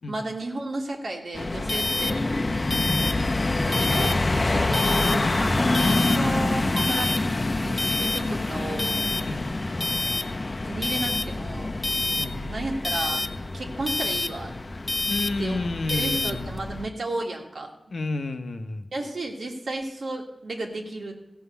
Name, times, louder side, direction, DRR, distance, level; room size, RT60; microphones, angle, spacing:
voice 1, 0.1-2.2 3.6-7.2 7.6-9.0 10.6-11.7 12.5-13.2 13.5-14.5 15.4-17.7 18.9-21.1, right 2 dB, 85° right, 1 dB, 1.9 m, -33 dB
sound 1, 1.3-16.9, left 2 dB, 45° left, 0.7 m, -25 dB
voice 2, 12.2-12.5 14.0-14.1 15.1-16.5 17.9-18.9, left 2 dB, 85° left, 8 dB, 0.9 m, -31 dB
15.0 x 5.7 x 7.0 m, 0.98 s
cardioid pair, 50°, 0 cm